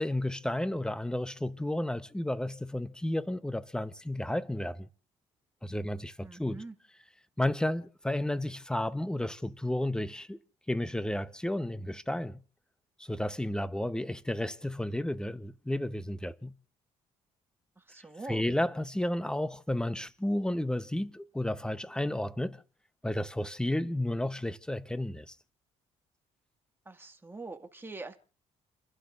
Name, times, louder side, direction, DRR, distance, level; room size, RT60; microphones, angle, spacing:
voice 1, 0.0-4.9 5.6-6.6 7.4-10.4 10.7-12.4 13.0-16.5 18.3-22.6 23.0-25.3, left 1 dB, 5° left, 0.9 m, -32 dB
voice 2, 6.2-6.7 17.8-18.4 26.9-28.2, right 3 dB, 15° right, 1.9 m, -43 dB
30.0 x 12.0 x 2.5 m
supercardioid pair, 75°, 14 cm